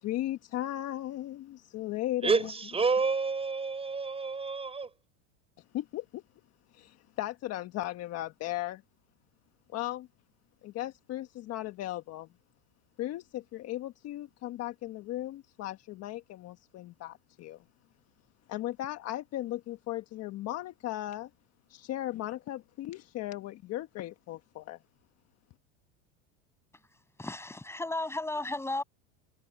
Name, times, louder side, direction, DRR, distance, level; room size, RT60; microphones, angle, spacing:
voice 1, 0.0-2.4 5.7-6.2 6.7-8.8 9.7-10.1 10.6-12.3 13.0-17.6 18.5-21.3 21.7-24.8, left 14 dB, 40° left, 1.4 m, -36 dB
voice 2, 2.2-4.9, right 4 dB, 15° right, 6.6 m, -29 dB
voice 3, 27.2-28.8, left 2 dB, 5° left, 7.6 m, -34 dB
supercardioid pair, 135°, 39 cm